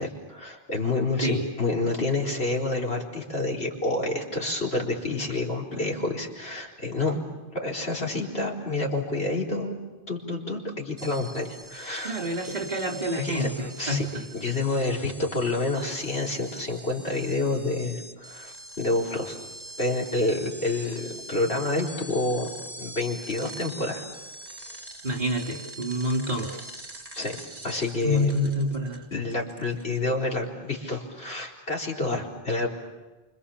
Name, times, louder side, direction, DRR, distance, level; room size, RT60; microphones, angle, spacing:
voice 1, 0.0-7.2 7.5-9.7 10.1-12.2 13.2-14.1 14.3-19.4 19.8-22.5 22.8-24.0 27.1-28.3 29.1-32.7, left 2 dB, 85° left, 0 dB, 4.4 m, -28 dB
sound 1, 11.0-30.1, right 1 dB, 20° right, 2.2 m, -44 dB
voice 2, 12.0-13.5 13.9-14.0 25.0-26.5 28.0-29.1, left 1 dB, 45° right, 0 dB, 4.2 m, -27 dB
28.5 x 26.5 x 7.2 m, 1.1 s
omnidirectional pair, 1.0 m